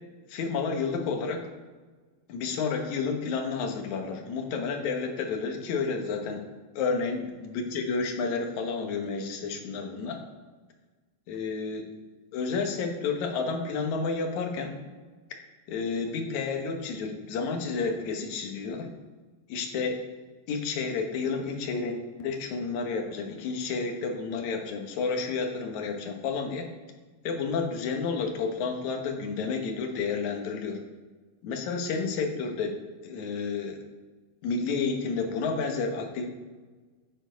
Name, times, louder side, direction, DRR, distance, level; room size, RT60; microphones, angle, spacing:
voice 1, 0.3-1.5 2.3-6.4 6.8-10.2 11.3-11.9 12.3-14.7 15.7-18.9 19.5-20.0 20.5-26.7 27.2-30.8 31.4-33.8 34.4-36.3, left 4 dB, 65° left, 3 dB, 2.4 m, -30 dB
9.1 x 7.2 x 5.1 m, 1.3 s
omnidirectional pair, 3.8 m